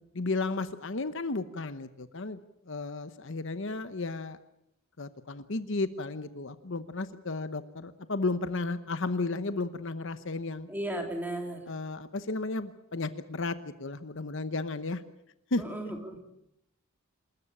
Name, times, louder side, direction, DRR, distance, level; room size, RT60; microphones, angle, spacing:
voice 1, 0.1-2.4 2.7-4.4 5.0-10.7 11.7-15.0 15.5-15.6, left 3 dB, 60° left, 12 dB, 1.0 m, -33 dB
voice 2, 10.7-11.6 15.6-16.2, right 1 dB, 10° right, 2 dB, 3.6 m, -35 dB
27.5 x 14.0 x 8.8 m, 0.81 s
head